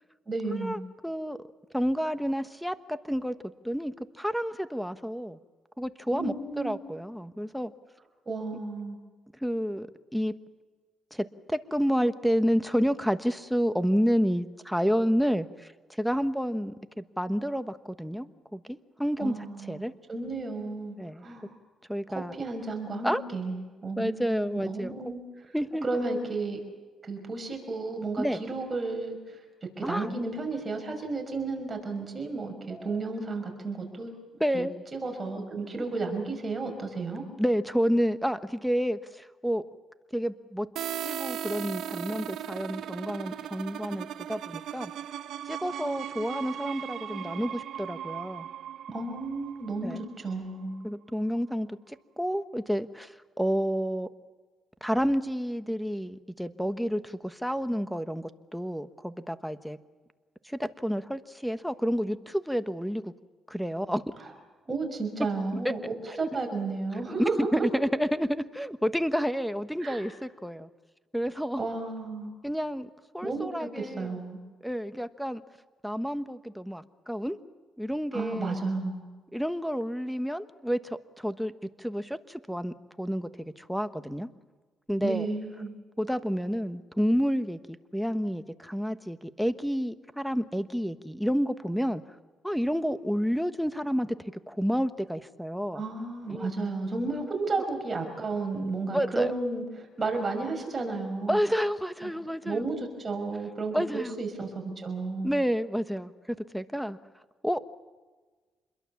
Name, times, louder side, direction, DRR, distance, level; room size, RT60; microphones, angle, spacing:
voice 1, 0.3-0.8 6.1-6.8 8.3-9.0 19.2-21.5 22.4-25.5 25.8-26.6 27.0-29.4 29.8-34.1 34.5-37.2 48.9-50.8 64.2-64.3 64.7-67.7 69.8-70.0 71.6-72.4 73.2-74.4 78.1-79.1 85.0-85.7 95.7-101.4 102.0-102.1 102.4-105.3, right 3 dB, 30° right, 3 dB, 5.8 m, -33 dB
voice 2, 1.0-1.4 1.7-3.3 3.6-5.4 5.8-7.7 9.4-9.9 10.1-10.3 11.1-18.3 18.5-19.4 19.7-19.9 21.0-21.2 21.9-22.3 23.0-23.2 24.0-24.9 25.5-25.8 28.2-28.4 29.8-30.1 32.7-33.0 34.4-34.7 37.4-39.6 40.1-40.7 41.0-44.9 45.5-48.5 49.8-50.0 50.8-54.1 54.8-59.8 60.4-63.1 63.5-64.0 65.6-65.7 66.1-66.3 67.2-70.7 71.1-71.6 72.4-74.1 74.6-75.4 75.8-77.4 77.8-78.5 79.3-81.5 81.8-84.3 84.9-85.3 86.0-92.0 92.4-94.2 94.5-95.8 96.3-96.5 98.9-99.3 101.3-102.6 103.7-104.1 105.2-107.0 107.4-107.6, equal, ahead, 11 dB, 1.2 m, -30 dB
sound 1, 40.8-50.3, right 10 dB, 75° right, 1.0 m, -37 dB
27.0 x 22.0 x 7.2 m, 1.4 s
cardioid pair, 90°, 0 cm